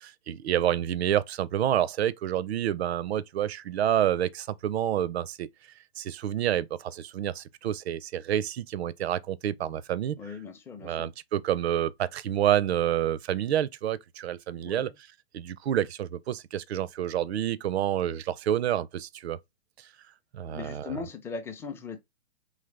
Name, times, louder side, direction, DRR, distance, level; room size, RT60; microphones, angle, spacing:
voice 1, 0.0-5.5 6.0-10.2 10.8-14.9 15.3-19.4 20.3-20.9, right 11 dB, 75° right, 0.5 m, -28 dB
voice 2, 10.2-11.1 14.6-14.9 20.4-22.0, left 5 dB, 10° left, 0.4 m, -39 dB
4.0 x 3.1 x 3.2 m
hypercardioid pair, 130°, 32 cm